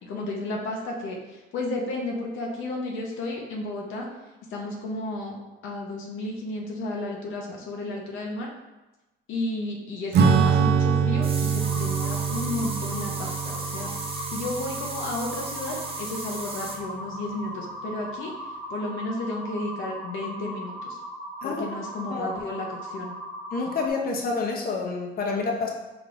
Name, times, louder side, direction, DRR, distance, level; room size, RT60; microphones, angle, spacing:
voice 1, 0.0-4.1 4.5-5.4 5.6-8.5 9.3-13.9 14.3-18.3 18.7-21.0 21.4-23.2, left 2 dB, 80° left, -1 dB, 0.7 m, -32 dB
Acoustic guitar / Strum, 10.1-16.1, right 6 dB, 60° right, 0.4 m, -25 dB
sound 1, 11.2-16.8, right 3 dB, 30° right, 0.7 m, -37 dB
sound 2, 11.6-23.9, equal, 15° left, 0.8 m, -38 dB
voice 2, 23.5-25.7, left 4 dB, 50° left, 0 dB, 0.8 m, -28 dB
5.0 x 3.5 x 2.5 m, 1.1 s
cardioid pair, 90°, 20 cm